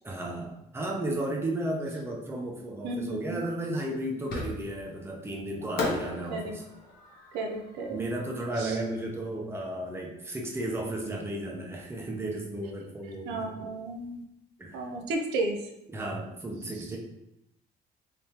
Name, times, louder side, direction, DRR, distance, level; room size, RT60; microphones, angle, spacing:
voice 1, 0.0-6.6 7.9-13.7 14.6-14.8 15.9-17.0, right 1 dB, 15° right, -1 dB, 0.8 m, -34 dB
voice 2, 2.8-3.5 6.3-6.5 7.3-8.0 8.6-8.7 13.2-14.2 14.7-15.6, right 2 dB, 90° right, 3 dB, 0.6 m, -33 dB
Fireworks, 4.3-5.0 5.8-8.9, left 3 dB, 60° left, 1.0 m, -36 dB
3.6 x 3.4 x 2.9 m, 0.84 s
cardioid pair, 110°, 17 cm